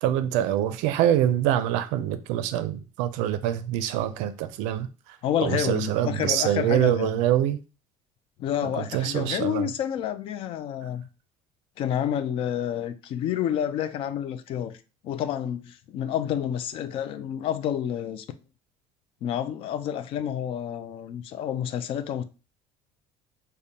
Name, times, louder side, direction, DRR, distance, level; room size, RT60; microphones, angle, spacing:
voice 1, 0.0-4.9 5.4-7.6 8.6-9.7, right 11 dB, 90° right, 0.4 m, -25 dB
voice 2, 5.2-7.2 8.4-11.1 11.8-14.8 15.0-18.2 19.2-22.2, left 10 dB, 50° left, 0.4 m, -29 dB
5.0 x 2.1 x 2.7 m
cardioid pair, 150°, 12 cm